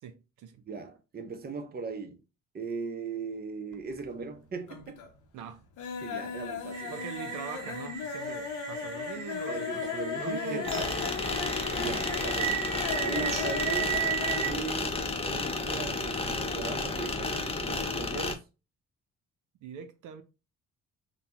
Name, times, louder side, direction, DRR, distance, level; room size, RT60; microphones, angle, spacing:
voice 1, 0.0-0.6 5.3-5.6 6.9-11.3 11.8-12.2 19.6-20.2, right 7 dB, 80° right, 0.6 m, -42 dB
voice 2, 0.7-2.2 2.5-5.0 6.0-6.9 9.5-10.9 11.7-12.6 13.0-14.0 14.3-15.0 15.2-18.4, right 4 dB, 30° right, 0.7 m, -38 dB
sound 1, 3.7-4.3 4.6-5.2 5.5-14.5 14.8-14.9 15.2-15.3, left 7 dB, 85° left, 0.8 m, -37 dB
sound 2, 6.7-14.5, right 10 dB, 65° right, 1.0 m, -36 dB
sound 3, 10.6-18.4, left 3 dB, 20° left, 0.5 m, -32 dB
3.9 x 2.2 x 2.9 m
cardioid pair, 90°, 30 cm